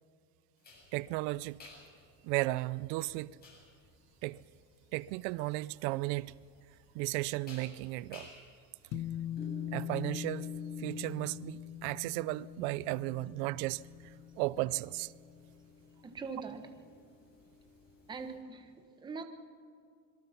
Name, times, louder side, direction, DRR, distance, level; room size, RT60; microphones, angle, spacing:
sound 1, 0.6-18.3, left 2 dB, 25° left, 7.8 m, -53 dB
voice 1, 0.9-1.6 2.2-3.4 4.2-4.4 4.9-6.3 6.9-8.3 9.7-10.5 10.8-13.8 14.4-15.1, right 19 dB, 60° right, 0.6 m, -34 dB
sound 2, 8.9-15.5, left 11 dB, 45° left, 1.3 m, -42 dB
voice 2, 16.0-16.8 18.1-19.2, right 4 dB, 10° right, 1.2 m, -42 dB
25.5 x 23.0 x 5.8 m
cardioid pair, 175°, 37 cm